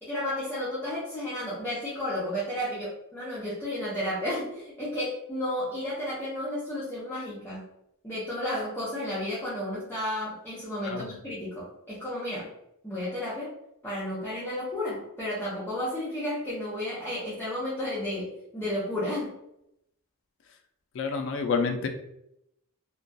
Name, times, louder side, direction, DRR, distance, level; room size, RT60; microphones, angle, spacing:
voice 1, 0.0-7.6 8.0-12.5 12.8-13.5 13.8-19.3, left 1 dB, 10° left, -9 dB, 0.6 m, -32 dB
voice 2, 20.9-21.9, left 5 dB, 60° left, 5 dB, 0.3 m, -28 dB
2.2 x 2.2 x 2.5 m, 0.80 s
head